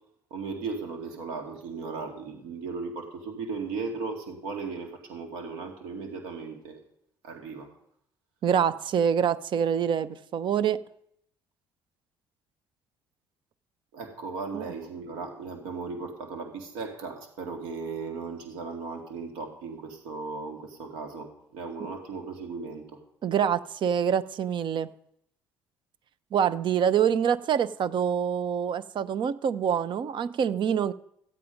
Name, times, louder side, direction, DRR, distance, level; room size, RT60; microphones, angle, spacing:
voice 1, 0.3-6.8 7.2-7.7 13.9-22.8, right 4 dB, 80° right, 3 dB, 2.1 m, -36 dB
voice 2, 8.4-10.8 14.5-14.6 23.2-24.9 26.3-30.9, right 8 dB, 55° right, 14 dB, 0.7 m, -25 dB
15.0 x 8.5 x 5.2 m, 0.73 s
hypercardioid pair, 60°, 10 cm